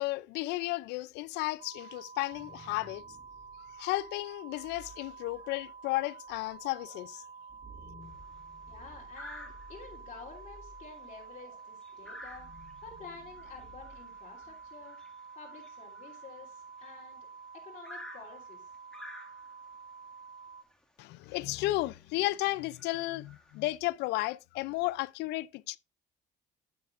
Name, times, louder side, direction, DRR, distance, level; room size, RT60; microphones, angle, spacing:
voice 1, 0.0-3.0 3.8-7.2 21.0-25.8, left 18 dB, 85° left, 0.4 m, -33 dB
sound 1, 1.6-20.6, right 5 dB, 50° right, 1.7 m, -49 dB
sound 2, 2.0-14.9, equal, 30° right, 2.9 m, -56 dB
sound 3, 8.0-8.4 9.1-10.0 10.4-10.6 10.8-17.1 17.8-19.7 20.7-20.8 21.2-21.3 21.9-22.1 22.6-23.7, left 1 dB, 5° left, 2.0 m, -51 dB
voice 2, 8.7-12.5 12.8-15.0 15.3-17.3 17.6-18.7, left 5 dB, 40° left, 3.0 m, -50 dB
9.5 x 9.3 x 2.5 m
cardioid pair, 110°, 17 cm